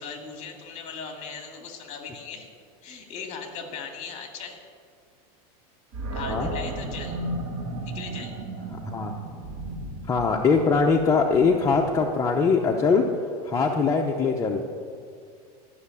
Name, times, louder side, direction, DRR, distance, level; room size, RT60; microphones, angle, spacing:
voice 1, 0.0-2.5 2.8-4.6 6.1-7.2 7.9-8.3, left 5 dB, 35° left, 4 dB, 2.2 m, -38 dB
Animal, 5.9-13.0, right 2 dB, 60° right, 3.0 m, -35 dB
voice 2, 10.1-13.1 13.4-14.6, left 4 dB, 15° left, 0 dB, 0.7 m, -22 dB
13.0 x 6.5 x 9.7 m, 2.2 s
supercardioid pair, 150°, 19 cm